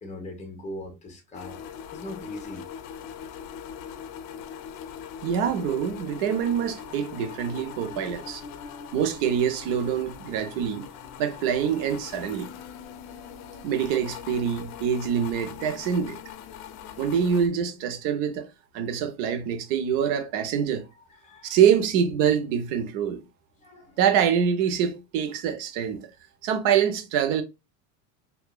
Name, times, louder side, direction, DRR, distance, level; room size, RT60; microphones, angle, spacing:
voice 1, 0.0-1.6 1.9-2.7 7.7-8.0 8.3-8.9 21.1-21.6 23.6-24.0, left 1 dB, 20° left, 1.2 m, -41 dB
sound 1, 1.3-17.5, left 8 dB, 55° left, 0.7 m, -41 dB
voice 2, 5.2-8.4 8.9-10.9 11.2-12.5 13.6-16.2 17.0-20.9 21.4-23.2 24.0-26.1 26.4-27.4, right 8 dB, 60° right, 0.9 m, -25 dB
4.7 x 2.6 x 2.3 m
cardioid pair, 150°, 37 cm